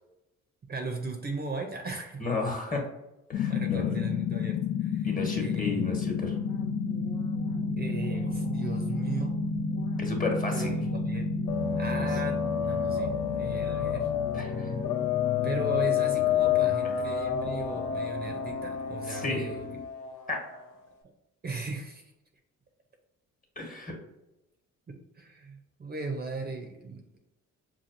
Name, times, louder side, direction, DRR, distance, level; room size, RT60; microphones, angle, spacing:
voice 1, 0.7-2.2 3.5-6.0 7.8-9.4 10.5-11.3 11.8-14.1 15.4-19.7 21.4-22.1 24.9-27.2, right 3 dB, 30° right, 3 dB, 0.6 m, -37 dB
voice 2, 2.2-2.8 3.3-3.9 5.0-6.3 10.0-10.8 12.0-12.1 14.3-14.7 19.1-19.4 20.3-20.4 23.6-23.9, left 3 dB, 25° left, 1 dB, 1.2 m, -33 dB
sound 1, 3.3-19.8, left 5 dB, 45° left, 0.4 m, -32 dB
sound 2, 6.2-18.6, left 2 dB, 65° left, 1.1 m, -47 dB
sound 3, 11.5-20.7, left 9 dB, 90° left, 0.6 m, -30 dB
5.7 x 2.3 x 2.5 m, 0.95 s
cardioid pair, 90°, 30 cm